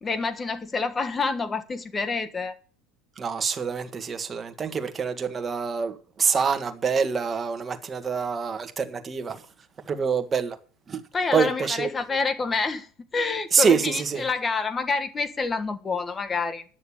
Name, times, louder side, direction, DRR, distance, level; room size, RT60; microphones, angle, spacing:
voice 1, 0.0-2.5 11.1-16.6, left 4 dB, 20° left, 1.3 m, -27 dB
voice 2, 3.2-9.4 9.8-10.6 10.9-11.0 11.3-11.9 13.5-14.2, right 6 dB, 20° right, 1.6 m, -26 dB
10.5 x 6.7 x 8.6 m
supercardioid pair, 135°, 0 cm